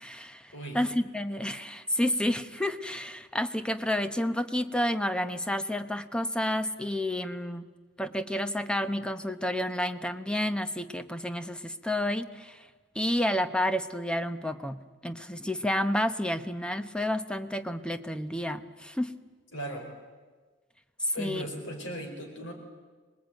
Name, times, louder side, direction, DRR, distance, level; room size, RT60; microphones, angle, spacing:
voice 1, 0.0-7.6 8.0-12.6 12.9-19.1 21.2-21.4, left 1 dB, 5° left, 10 dB, 0.9 m, -30 dB
voice 2, 19.5-19.9 21.1-22.5, right 1 dB, 75° left, 4 dB, 5.0 m, -37 dB
25.5 x 20.0 x 9.3 m, 1.4 s
head